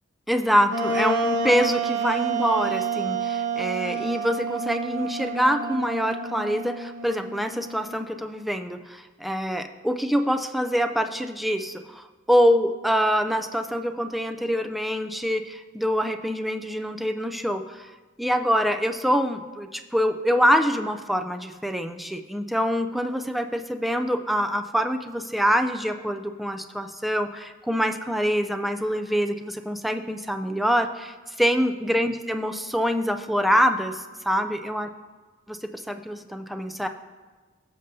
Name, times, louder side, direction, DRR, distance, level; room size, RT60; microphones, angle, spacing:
voice 1, 0.3-17.9 18.2-34.9 35.5-36.9, equal, ahead, 6 dB, 0.4 m, -25 dB
Wind instrument woodwind instrument, 0.7-8.1, right 3 dB, 85° right, 1.1 m, -29 dB
16.0 x 6.5 x 2.7 m, 1.3 s
head